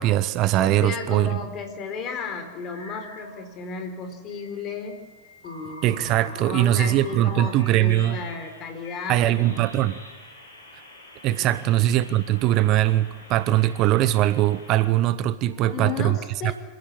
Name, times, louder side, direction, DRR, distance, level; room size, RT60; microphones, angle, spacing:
voice 1, 0.0-1.4 5.8-8.2 9.1-10.0 11.2-16.2 16.4-16.5, right 14 dB, 40° right, 15 dB, 0.8 m, -21 dB
voice 2, 0.6-5.0 5.4-6.1 6.3-9.7 11.4-11.6 15.5-16.5, left 5 dB, 35° left, 6 dB, 4.1 m, -34 dB
sound 1, 2.5-3.4 4.3-14.9, left 1 dB, 70° left, 5.6 m, -45 dB
26.0 x 15.5 x 8.6 m, 1.2 s
figure-of-eight pair, 90°, 0 cm